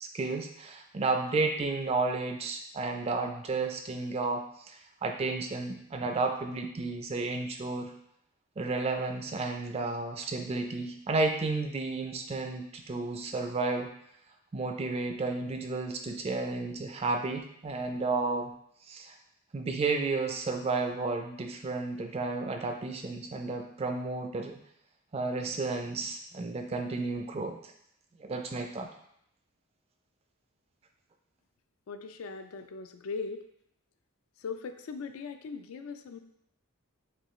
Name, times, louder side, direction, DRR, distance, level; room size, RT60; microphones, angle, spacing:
voice 1, 0.0-7.9 8.6-13.9 14.5-18.5 18.9-19.1 19.5-24.6 25.1-27.7 28.2-28.9, right 3 dB, 25° right, 4 dB, 0.3 m, -32 dB
voice 2, 31.9-33.4 34.4-36.2, left 4 dB, 70° left, 8 dB, 0.3 m, -39 dB
6.5 x 2.3 x 3.1 m, 0.72 s
head